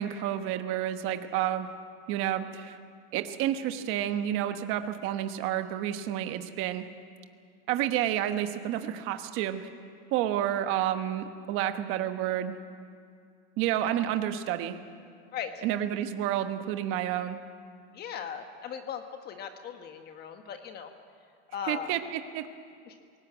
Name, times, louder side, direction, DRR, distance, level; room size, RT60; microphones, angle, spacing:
voice 1, 0.0-1.7 2.1-2.8 3.1-6.9 7.7-9.6 10.1-12.6 13.6-14.8 15.6-17.4 21.7-22.4, right 11 dB, 40° right, 8 dB, 1.2 m, -30 dB
voice 2, 15.3-15.6 17.9-20.9 21.5-21.9 22.9-23.0, left 8 dB, 30° left, 6 dB, 1.4 m, -38 dB
21.0 x 18.5 x 9.0 m, 2.2 s
supercardioid pair, 145°, 31 cm